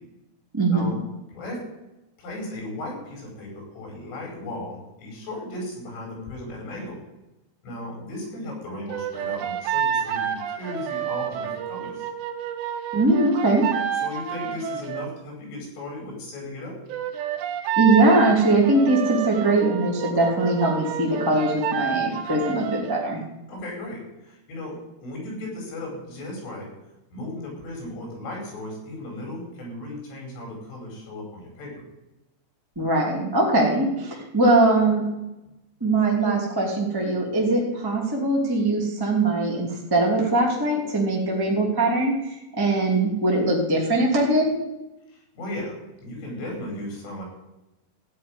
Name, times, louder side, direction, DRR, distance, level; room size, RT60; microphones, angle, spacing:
voice 1, 0.5-0.9 12.9-13.6 17.7-23.2 32.7-35.0 35.8-44.5, right 2 dB, 10° right, -3 dB, 1.2 m, -21 dB
voice 2, 1.3-1.6 2.2-7.0 7.6-12.1 14.0-16.8 23.5-26.7 27.1-31.8 45.1-47.2, left 1 dB, 75° left, -1 dB, 7.5 m, -36 dB
sound 1, 8.9-15.1 16.9-23.1, right 9 dB, 70° right, 2.8 m, -29 dB
15.5 x 5.5 x 10.0 m, 0.95 s
omnidirectional pair, 5.8 m